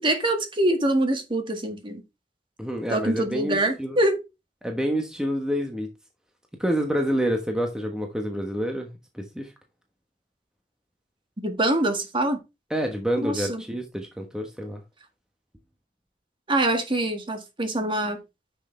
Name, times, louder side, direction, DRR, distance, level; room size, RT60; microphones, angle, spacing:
voice 1, 0.0-2.0 2.9-4.2 11.4-12.4 13.2-13.6 16.5-18.2, right 1 dB, 30° right, 1.8 m, -24 dB
voice 2, 2.6-4.0 4.6-5.9 6.6-9.5 12.7-14.8, equal, 5° right, 1.2 m, -28 dB
9.9 x 6.4 x 3.3 m
head